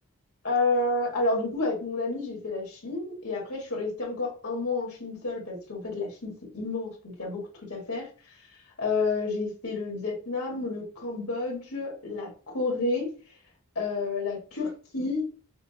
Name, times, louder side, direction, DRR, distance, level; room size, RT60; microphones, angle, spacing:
voice 1, 0.4-8.1 8.8-13.1 13.8-15.3, left 3 dB, 90° left, -1 dB, 1.7 m, -30 dB
5.7 x 2.1 x 2.8 m, 0.37 s
head